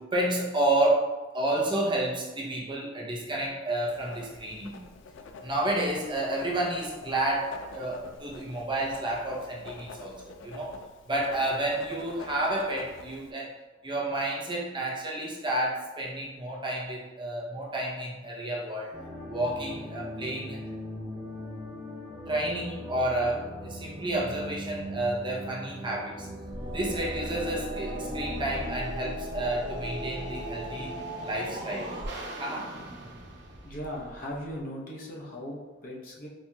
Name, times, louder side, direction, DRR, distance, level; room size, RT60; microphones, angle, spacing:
voice 1, 0.0-4.8 5.4-10.7 11.1-13.5 13.8-18.9 19.3-20.6 22.3-26.3 26.7-31.0 31.2-31.9 32.4-32.7, right 1 dB, 25° right, -4 dB, 0.6 m, -30 dB
Writing, 3.9-13.3, left 4 dB, 85° left, 0.3 m, -46 dB
sound 1, 18.9-28.7, equal, 5° right, 1.0 m, -40 dB
sound 2, 26.4-34.6, right 1 dB, 65° right, 0.7 m, -37 dB
voice 2, 33.6-36.3, equal, 50° left, -4 dB, 0.8 m, -38 dB
4.1 x 2.9 x 2.3 m, 1.2 s
head